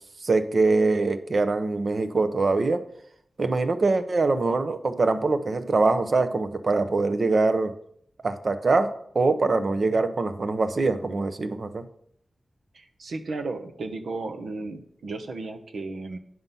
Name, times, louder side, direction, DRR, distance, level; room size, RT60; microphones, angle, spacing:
voice 1, 0.2-2.8 3.4-7.7 8.2-11.8, right 3 dB, 50° right, 10 dB, 0.8 m, -23 dB
voice 2, 12.7-16.2, right 3 dB, 85° right, 5 dB, 1.0 m, -34 dB
9.5 x 5.9 x 5.5 m, 0.67 s
wide cardioid pair, 115°, 0 cm